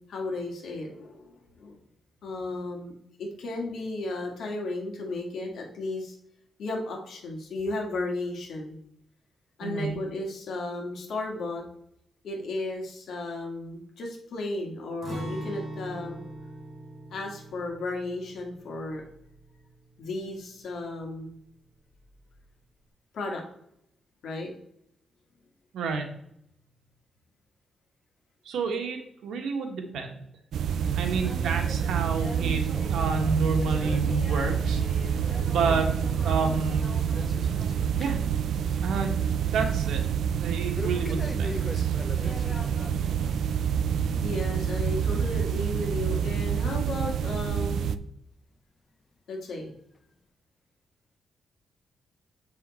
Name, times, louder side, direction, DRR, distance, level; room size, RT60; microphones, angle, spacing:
voice 1, 0.1-1.8 2.2-2.9 3.2-6.1 6.6-8.8 9.6-11.6 12.2-16.2 17.1-19.0 20.0-21.4 23.1-23.4 24.2-24.5 44.2-48.0 49.3-49.7, left 2 dB, 65° left, 0 dB, 2.1 m, -34 dB
voice 2, 9.6-10.0 25.7-26.1 28.4-30.1 30.9-32.6 32.9-34.8 35.2-35.9 36.2-36.9 38.0-38.2 38.8-39.2 39.5-40.0 40.4-41.9, right 4 dB, 90° right, 4 dB, 1.4 m, -29 dB
Acoustic guitar, 15.0-20.9 21.2-21.4 21.9-22.4, right 1 dB, 35° right, 2.6 m, -41 dB
sound 1, 30.5-48.0, right 8 dB, 70° right, 0.4 m, -27 dB
sound 2, 30.8-38.3 38.6-39.0 39.3-39.4 40.7-43.4 43.8-44.0 44.7-44.8 45.7-45.8 46.6-46.7, left 3 dB, 25° left, 0.5 m, -42 dB
7.3 x 5.6 x 4.2 m, 0.73 s
cardioid pair, 140°, 0 cm